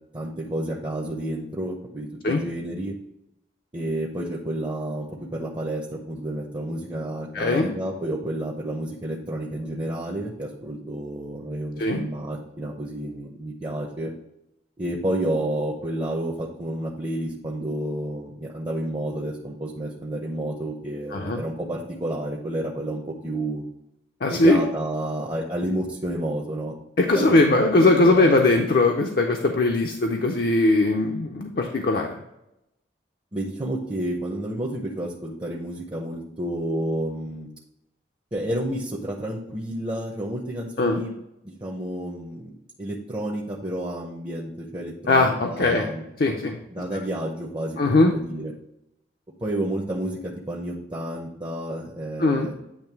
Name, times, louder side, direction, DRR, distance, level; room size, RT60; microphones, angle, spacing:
voice 1, 0.1-3.0 3.7-14.1 14.8-23.6 24.3-26.7 27.1-27.6 27.9-28.5 33.3-37.5 38.3-41.1 41.6-42.5 42.8-46.0 46.7-48.5 49.4-52.7, right 1 dB, 20° right, 0 dB, 0.6 m, -30 dB
voice 2, 7.3-7.7 11.8-12.0 21.1-21.4 24.2-24.6 27.0-32.2 40.8-41.0 45.1-45.9 46.2-46.6 47.8-48.1 52.2-52.5, left 2 dB, 50° left, 2 dB, 0.5 m, -20 dB
8.8 x 3.1 x 4.6 m, 0.87 s
head